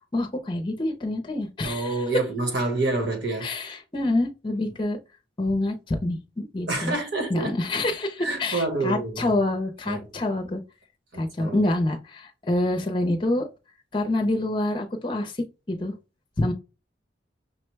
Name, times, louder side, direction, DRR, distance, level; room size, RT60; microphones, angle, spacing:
voice 1, 0.1-2.1 3.4-5.0 5.4-7.0 7.3-10.6 11.2-13.5 13.9-15.3 15.7-15.9 16.4-16.5, left 2 dB, 25° left, 0.6 m, -26 dB
voice 2, 1.6-3.5 6.7-7.5 8.2-9.3 9.9-10.0 11.1-11.7, right 2 dB, 60° right, 1.3 m, -28 dB
5.8 x 2.2 x 3.2 m
head